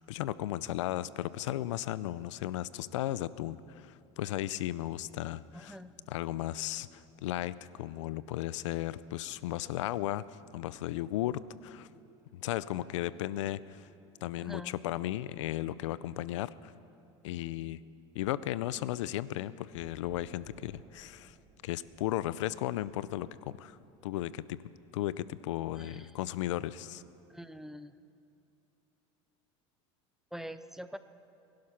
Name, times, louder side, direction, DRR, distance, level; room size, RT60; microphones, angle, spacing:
voice 1, 0.1-5.8 6.1-10.2 10.5-11.9 12.3-13.9 14.2-16.7 17.2-17.8 18.1-21.4 21.6-23.8 24.0-24.6 24.9-27.0, left 14 dB, 90° left, 18 dB, 0.5 m, -35 dB
voice 2, 5.5-5.9 14.4-14.8 25.8-26.1 27.3-27.9 30.3-31.0, equal, 5° right, 12 dB, 0.6 m, -44 dB
sound 1, 19.7-24.6, right 4 dB, 25° right, 1.7 m, -60 dB
21.5 x 11.5 x 5.8 m, 2.6 s
supercardioid pair, 110°, 15 cm